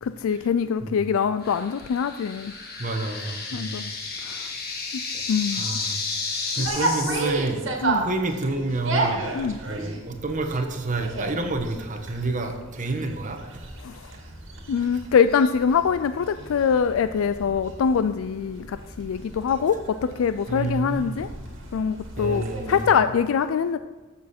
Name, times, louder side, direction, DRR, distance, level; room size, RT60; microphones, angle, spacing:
voice 1, 0.0-2.5 3.5-3.9 4.2-4.5 5.3-5.7 6.6-6.7 7.8-8.1 9.3-9.6 13.8-14.0 14.7-21.3 21.7-23.8, left 6 dB, 80° left, 12 dB, 0.3 m, -24 dB
sound 1, 1.4-7.3, left 4 dB, 50° left, 1.6 m, -32 dB
voice 2, 2.8-3.8 4.8-4.9 5.5-6.0 6.6-7.6 8.0-9.2 9.6-13.4 14.8-14.9 20.5-21.2 22.2-22.9, right 2 dB, 40° right, 4 dB, 1.2 m, -29 dB
sound 2, 6.6-22.9, right 2 dB, 65° right, 1.9 m, -33 dB
13.5 x 7.1 x 4.3 m, 1.3 s
head